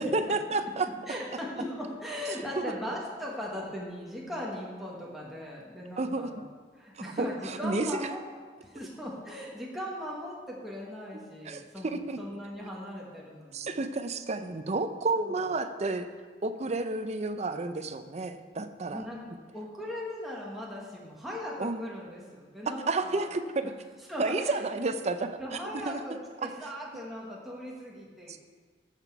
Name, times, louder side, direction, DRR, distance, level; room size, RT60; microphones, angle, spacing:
voice 1, 0.0-0.9 2.6-2.7 6.0-6.3 7.0-7.9 11.4-12.2 13.5-16.1 16.4-19.0 21.6-21.8 22.9-23.7 24.2-25.6 25.9-26.0 26.4-26.5 28.3-28.4, right 3 dB, 40° right, 9 dB, 0.6 m, -31 dB
voice 2, 1.1-6.4 6.8-8.2 8.6-13.8 15.2-15.4 18.9-23.3 24.1-24.9 25.4-28.4, equal, ahead, -4 dB, 1.4 m, -39 dB
15.0 x 6.0 x 4.6 m, 1.5 s
head